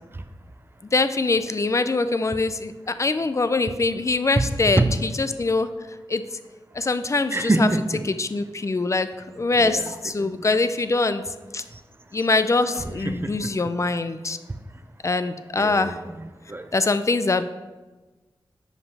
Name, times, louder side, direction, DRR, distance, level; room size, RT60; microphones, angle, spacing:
voice 1, 0.9-5.7 6.1-6.2 6.7-7.7 8.1-11.2 11.5-11.6 12.1-14.4 15.0-16.0 16.7-17.4, left 3 dB, 35° left, 11 dB, 0.4 m, -23 dB
voice 2, 7.3-8.1 9.6-10.5 12.7-13.5 15.5-16.7, right 2 dB, 25° right, 9 dB, 0.5 m, -26 dB
5.4 x 4.9 x 5.4 m, 1.2 s
wide cardioid pair, 70°, 9 cm